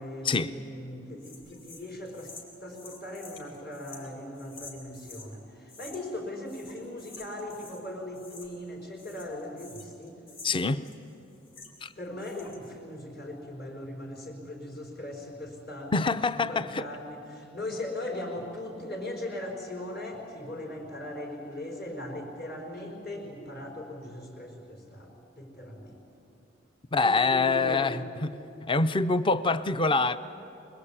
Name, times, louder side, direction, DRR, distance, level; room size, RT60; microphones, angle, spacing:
voice 1, 0.0-2.3 2.6-10.2 12.0-26.0 27.0-28.1, left 1 dB, 60° left, 4.6 m, -39 dB
sound 1, 1.2-5.3 5.7-6.2 6.4-7.8 8.1-8.7 9.0-11.9 12.2-12.7, left 3 dB, 90° left, 4.4 m, -49 dB
voice 2, 10.4-10.9 11.8-11.9 15.9-16.9 26.9-28.4 28.7-30.2, left 3 dB, 25° left, 0.5 m, -25 dB
24.5 x 21.5 x 8.8 m
head